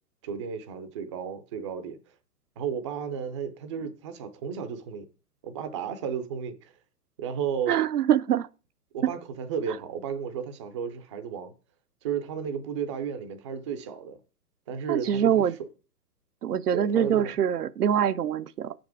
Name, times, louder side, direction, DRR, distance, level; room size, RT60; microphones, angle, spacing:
voice 1, 0.2-2.1 2.6-5.1 5.4-6.7 7.2-7.8 8.9-11.5 12.0-14.2 14.7-15.7 16.7-17.3, right 7 dB, 20° right, 0.4 m, -33 dB
voice 2, 7.7-8.5 14.9-15.5 16.4-18.7, right 9 dB, 75° right, 0.6 m, -24 dB
8.8 x 5.1 x 4.7 m
figure-of-eight pair, 115°, 47 cm